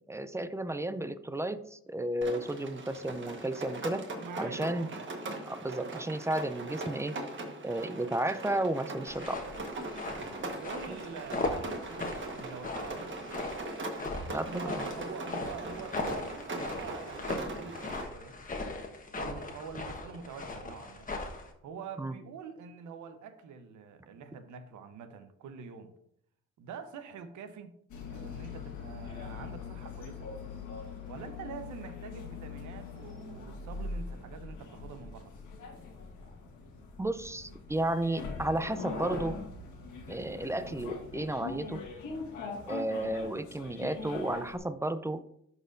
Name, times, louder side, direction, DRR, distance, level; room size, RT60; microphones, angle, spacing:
voice 1, 0.1-4.0 4.4-4.9 5.5-7.2 7.6-9.4 10.9-11.0 14.3-14.9 22.0-22.1 37.0-39.4 40.1-41.8 42.7-45.2, right 1 dB, 10° right, 0.4 m, -33 dB
Rain, 2.2-18.0, right 2 dB, 40° right, 1.3 m, -40 dB
voice 2, 4.2-5.0 10.2-13.3 14.2-18.4 19.1-21.1 21.6-25.9 26.6-27.8 28.1-30.3 31.1-35.3, right 6 dB, 75° right, 0.9 m, -45 dB
sound 1, 9.1-21.5, left 3 dB, 25° left, 1.1 m, -39 dB
sound 2, 27.9-44.6, left 4 dB, 85° left, 1.4 m, -42 dB
12.0 x 4.1 x 2.6 m
cardioid pair, 90°, 30 cm